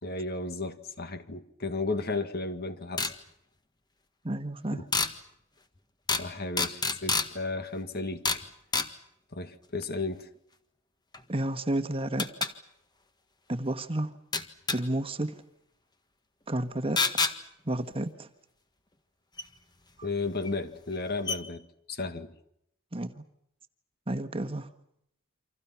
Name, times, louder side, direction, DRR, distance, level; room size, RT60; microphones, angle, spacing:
voice 1, 0.0-3.1 4.7-4.8 6.2-8.3 9.3-10.3 20.0-21.6 21.9-22.3, left 3 dB, 45° left, 2.0 m, -34 dB
sound 1, 3.0-3.1 4.9-5.1 6.1-6.3 6.6-7.3 8.2-8.4 8.7-8.9 11.1-11.2 12.2-12.5 14.3-14.8 17.0-17.3 19.4-19.5 20.4-20.5 20.9-21.0 21.3-21.4, left 4 dB, 20° left, 1.6 m, -27 dB
voice 2, 4.2-4.8 11.3-12.5 13.5-14.1 14.7-15.4 16.5-17.0 17.6-18.3 22.9-23.2 24.1-24.7, right 1 dB, 25° right, 1.4 m, -31 dB
29.0 x 26.5 x 5.9 m
head